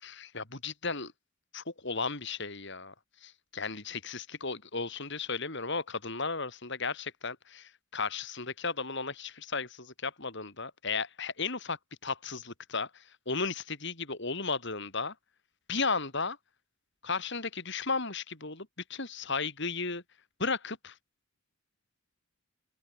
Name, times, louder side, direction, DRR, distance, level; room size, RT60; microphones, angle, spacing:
voice 1, 0.0-1.1 1.5-2.9 3.2-15.1 15.7-16.4 17.0-20.0 20.4-20.9, left 4 dB, 55° left, 4.0 m, -35 dB
open air
head